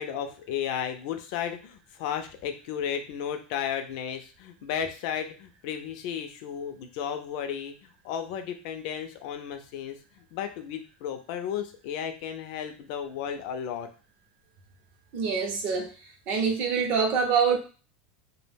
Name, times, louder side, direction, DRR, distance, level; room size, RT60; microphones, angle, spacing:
voice 1, 0.0-13.9, left 8 dB, 45° left, 7 dB, 0.4 m, -34 dB
voice 2, 15.1-15.9 16.3-17.6, right 6 dB, 30° right, 2 dB, 0.5 m, -25 dB
2.3 x 2.1 x 3.3 m, 0.36 s
supercardioid pair, 180°, 5 cm